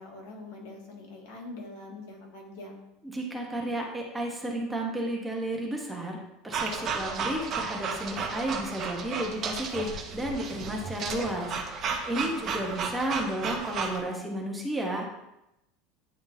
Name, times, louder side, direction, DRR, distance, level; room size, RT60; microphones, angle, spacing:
voice 1, 0.0-2.8 12.1-12.4, left 2 dB, 80° left, -1 dB, 1.8 m, -43 dB
voice 2, 3.0-15.1, right 1 dB, 10° right, 0 dB, 1.0 m, -32 dB
sound 1, 6.5-14.0, right 5 dB, 35° right, 0.9 m, -33 dB
9.5 x 3.6 x 2.7 m, 0.89 s
supercardioid pair, 150°, 0 cm